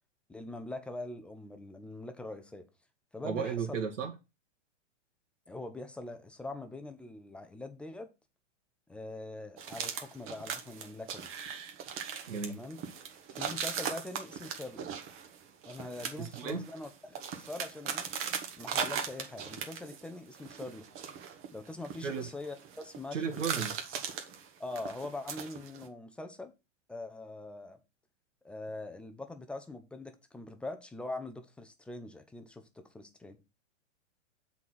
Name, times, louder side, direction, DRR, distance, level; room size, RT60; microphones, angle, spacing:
voice 1, 0.3-2.7 3.1-3.8 5.5-8.1 8.9-11.3 12.5-12.8 13.3-14.9 15.6-18.1 18.6-20.8 21.5-23.6 24.6-26.5 26.9-27.8 28.4-33.4, left 2 dB, 5° left, 0.4 m, -43 dB
voice 2, 3.2-4.1 12.3-12.6 16.2-16.6 22.0-22.3 23.1-23.7, right 6 dB, 80° right, 1.8 m, -34 dB
sound 1, 9.6-20.1 20.3-23.0 23.3-25.9, right 7 dB, 35° right, 1.5 m, -39 dB
7.2 x 4.1 x 6.1 m
hypercardioid pair, 130°, 37 cm